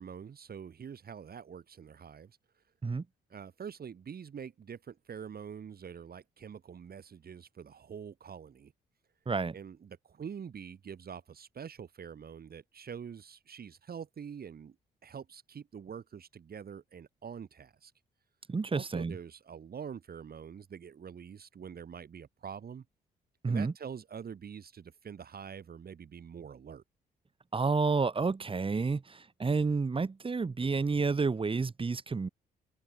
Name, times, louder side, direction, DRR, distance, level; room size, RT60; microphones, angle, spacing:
voice 1, 0.0-2.6 3.3-8.7 9.5-14.7 15.0-17.9 18.7-22.8 23.4-26.8, right 7 dB, 50° right, 2.9 m, -45 dB
voice 2, 18.5-19.1 23.4-23.7 27.5-32.3, right 4 dB, 25° right, 1.1 m, -30 dB
hypercardioid pair, 45°, 20 cm